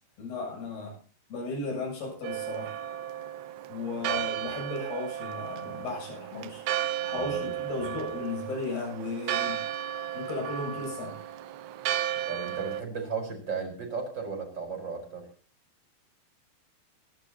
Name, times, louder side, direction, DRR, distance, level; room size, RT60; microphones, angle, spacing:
voice 1, 0.2-1.0 1.3-2.7 3.7-6.6 7.0-9.6 10.1-11.2, left 3 dB, 70° left, -1 dB, 9.5 m, -35 dB
Church bell, 2.2-12.8, right 11 dB, 85° right, 3.0 m, -34 dB
voice 2, 7.0-7.4 8.0-8.1 12.3-15.3, right 5 dB, 25° right, 3 dB, 4.9 m, -35 dB
27.5 x 11.5 x 2.9 m, 0.37 s
omnidirectional pair, 4.8 m